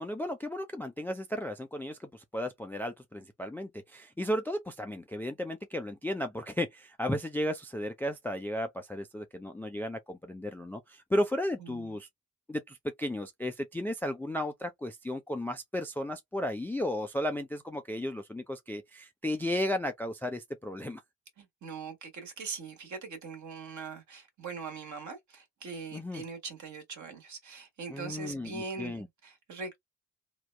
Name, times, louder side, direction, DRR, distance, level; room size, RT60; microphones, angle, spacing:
voice 1, 0.0-12.1 12.5-21.0 25.9-26.2 27.9-29.1, left 1 dB, 5° left, 0.3 m, -34 dB
voice 2, 11.6-11.9 21.4-29.8, right 4 dB, 50° right, 1.3 m, -42 dB
3.4 x 2.1 x 2.2 m
figure-of-eight pair, 40°, 38 cm